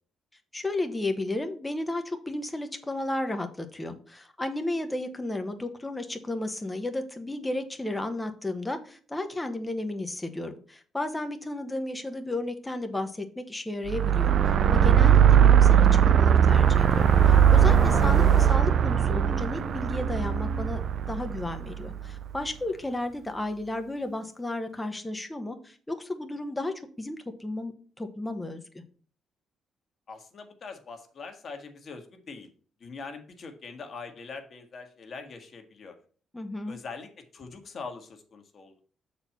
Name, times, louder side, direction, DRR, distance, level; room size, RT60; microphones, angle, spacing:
voice 1, 0.5-20.8 21.1-28.6 36.3-36.8, left 2 dB, 15° left, 6 dB, 1.2 m, -33 dB
sound 1, 13.9-22.2, right 8 dB, 60° right, 0.4 m, -20 dB
sound 2, 16.3-20.7, left 4 dB, 30° left, 0.9 m, -38 dB
voice 2, 30.1-32.5 32.8-36.0 36.7-38.8, left 4 dB, 50° left, 5 dB, 1.5 m, -42 dB
6.8 x 4.4 x 5.7 m, 0.43 s
cardioid pair, 90°, 0 cm